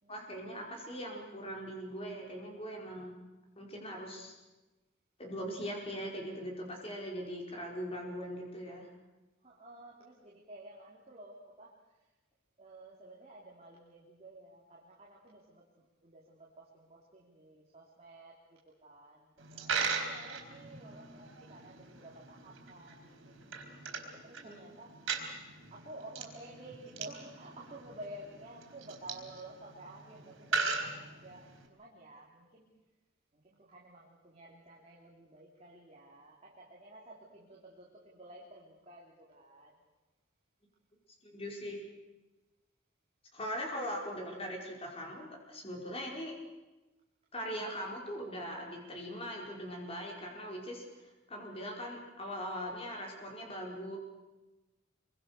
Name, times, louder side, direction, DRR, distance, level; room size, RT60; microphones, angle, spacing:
voice 1, 0.1-3.2 3.6-4.3 5.2-8.9 24.4-24.7 41.2-41.8 43.3-46.3 47.3-54.0, equal, 30° left, 0 dB, 5.0 m, -41 dB
voice 2, 9.4-12.1 12.6-23.4 24.0-25.0 25.7-32.8 33.3-39.8, right 1 dB, 30° right, -3 dB, 3.3 m, -52 dB
Coin (dropping), 19.4-31.7, right 4 dB, 85° right, 4.3 m, -40 dB
26.0 x 23.5 x 6.7 m, 1.1 s
head